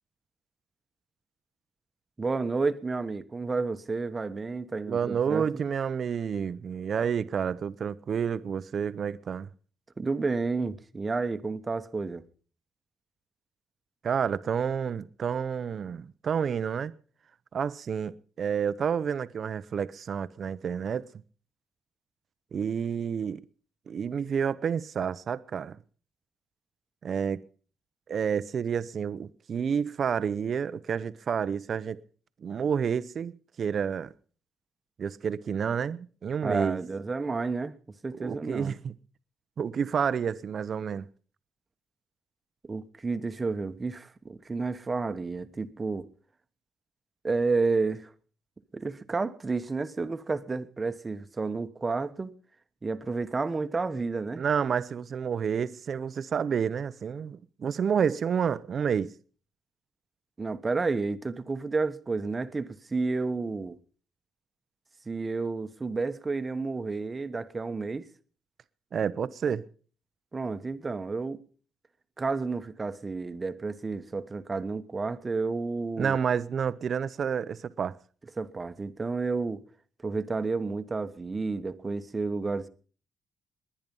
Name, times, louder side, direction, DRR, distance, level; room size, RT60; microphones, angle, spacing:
voice 1, 2.2-5.5 10.0-12.2 36.4-37.7 38.0-38.7 42.6-46.1 47.2-48.1 48.7-52.3 52.8-54.4 60.4-63.8 65.0-68.1 70.3-71.4 72.2-76.2 78.4-79.6 80.0-82.7, right 4 dB, 25° right, 1.2 m, -31 dB
voice 2, 4.9-9.5 14.0-16.9 17.5-21.1 22.5-23.4 23.9-25.8 27.0-27.4 28.1-32.0 32.4-33.3 33.6-34.1 35.0-36.8 38.2-38.9 39.6-41.1 54.4-59.1 68.9-69.6 76.0-78.0, right 7 dB, 50° right, 0.8 m, -29 dB
20.0 x 10.5 x 5.5 m
cardioid pair, 90°, 0 cm